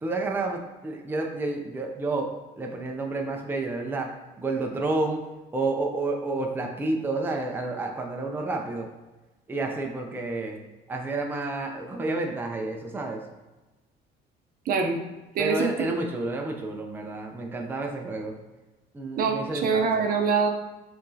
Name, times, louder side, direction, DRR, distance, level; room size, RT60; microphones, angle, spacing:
voice 1, 0.0-5.3 5.5-8.9 9.5-10.6 10.9-13.2 15.4-18.4 18.9-20.1, right 2 dB, 10° right, 2 dB, 0.5 m, -30 dB
voice 2, 14.7-15.0 15.3-16.0 19.2-20.5, right 5 dB, 60° right, 3 dB, 0.6 m, -24 dB
4.4 x 3.1 x 2.7 m, 1.1 s
cardioid pair, 110°, 17 cm